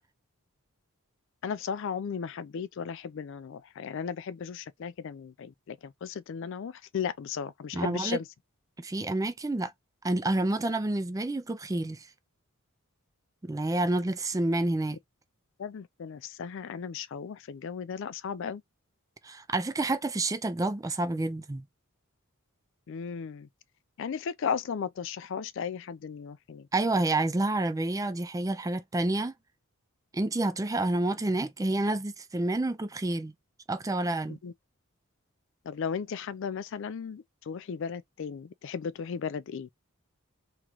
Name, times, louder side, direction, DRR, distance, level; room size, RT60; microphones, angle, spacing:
voice 1, 1.4-8.3 15.6-18.6 22.9-23.5 24.0-26.7 34.3-34.5 35.7-39.7, left 6 dB, 60° left, 0.4 m, -35 dB
voice 2, 7.7-8.2 8.8-9.7 10.0-12.1 13.4-15.0 19.2-21.6 26.7-29.3 30.1-33.3 33.7-34.4, right 2 dB, 15° right, 0.4 m, -29 dB
3.7 x 3.0 x 3.0 m
head